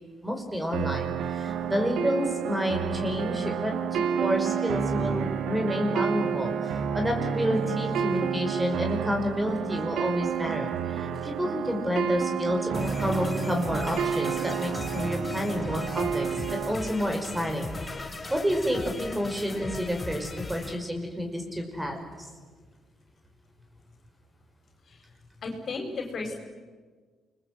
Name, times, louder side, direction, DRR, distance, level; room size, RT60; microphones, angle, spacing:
voice 1, 0.2-16.3 16.6-17.7 18.3-22.3, equal, 10° right, 4 dB, 5.7 m, -29 dB
sound 1, 0.7-16.7, right 7 dB, 80° right, 1.8 m, -30 dB
sound 2, 12.7-20.8, left 3 dB, 25° left, 3.6 m, -38 dB
voice 2, 25.4-26.3, left 3 dB, 55° left, 3 dB, 5.5 m, -34 dB
29.0 x 22.0 x 8.0 m, 1.5 s
cardioid pair, 90°, 0 cm